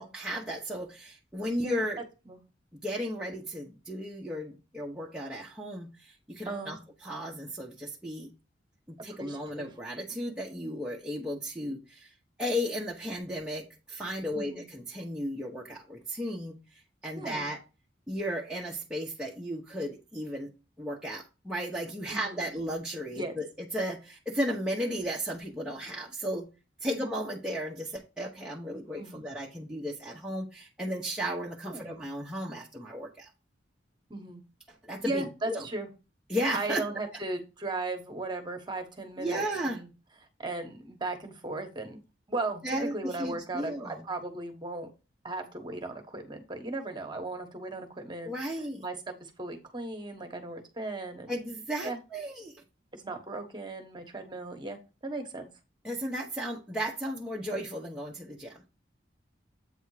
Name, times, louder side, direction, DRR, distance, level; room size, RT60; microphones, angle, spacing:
voice 1, 0.0-2.0 2.8-8.3 8.9-12.1 12.4-17.6 18.1-20.5 20.8-26.5 26.8-33.3 34.8-35.7 36.3-36.9 39.2-39.8 42.6-44.1 48.2-48.8 51.3-52.6 55.8-58.6, equal, 5° right, -4 dB, 0.8 m, -35 dB
voice 2, 6.5-6.8 9.2-9.7 14.3-14.6 17.2-17.5 22.1-22.5 23.1-23.4 26.9-27.1 29.0-29.2 31.7-31.9 34.1-34.4 35.0-35.9 36.5-39.9 40.4-42.0 42.3-44.9 45.2-48.3 48.8-51.4 51.8-52.0 52.9-55.5, right 2 dB, 25° right, 5 dB, 1.1 m, -37 dB
8.2 x 3.5 x 4.8 m, 0.29 s
head